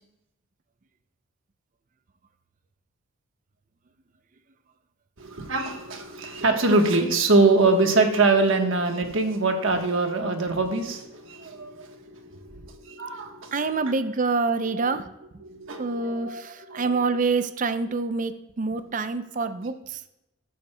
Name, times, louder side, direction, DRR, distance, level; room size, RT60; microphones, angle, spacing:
voice 1, 5.2-13.9 14.7-14.9 15.4-17.2, right 3 dB, 65° right, 4 dB, 1.2 m, -24 dB
voice 2, 13.5-15.1 15.8-20.0, right 4 dB, 35° right, 11 dB, 0.4 m, -26 dB
13.5 x 9.2 x 2.2 m, 0.89 s
head